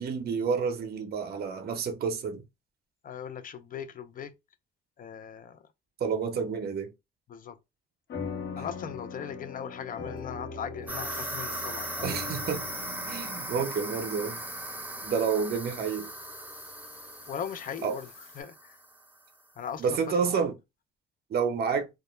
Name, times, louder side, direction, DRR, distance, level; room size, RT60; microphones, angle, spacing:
voice 1, 0.0-2.4 6.0-6.9 12.0-12.6 13.1-14.4 15.0-16.1 17.8-18.0 19.8-20.6 21.3-21.9, right 6 dB, 50° right, 0.6 m, -29 dB
voice 2, 3.0-4.3 5.0-5.6 7.3-7.6 8.6-12.1 17.3-18.1 18.4-18.8 19.6-20.4, left 8 dB, 45° left, 0.4 m, -39 dB
sound 1, 8.1-16.9, left 5 dB, 65° left, 0.9 m, -42 dB
sound 2, 10.2-10.3 10.9-18.4, left 4 dB, 90° left, 1.0 m, -51 dB
sound 3, 10.9-19.1, right 1 dB, 10° right, 0.5 m, -38 dB
2.2 x 2.1 x 3.0 m
cardioid pair, 90°, 20 cm